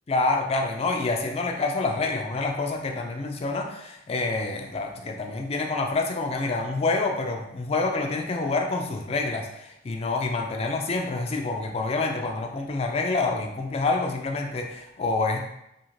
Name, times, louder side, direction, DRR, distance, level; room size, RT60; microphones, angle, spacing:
voice 1, 0.1-15.4, left 3 dB, 35° left, 3 dB, 0.3 m, -27 dB
2.4 x 2.4 x 3.0 m, 0.82 s
head